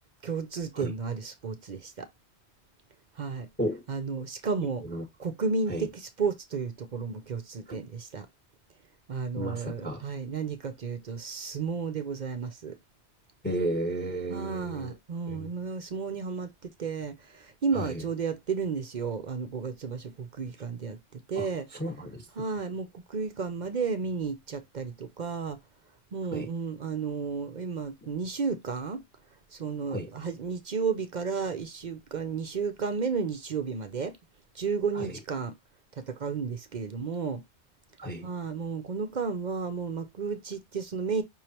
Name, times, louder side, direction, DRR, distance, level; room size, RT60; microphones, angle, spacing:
voice 1, 0.2-2.1 3.2-3.5 3.9-4.8 5.2-8.3 9.1-12.8 14.3-21.7 22.4-25.6 26.1-29.0 29.5-34.2 34.5-35.5 35.9-37.4 38.2-41.2, right 5 dB, 50° right, 0.6 m, -32 dB
voice 2, 9.3-10.0 13.4-15.0 15.3-15.5 17.7-18.0 21.3-22.3 26.3-26.5 29.9-30.1 34.9-35.2 38.0-38.3, right 1 dB, 10° left, 1.2 m, -33 dB
5.4 x 3.2 x 2.8 m
omnidirectional pair, 1.2 m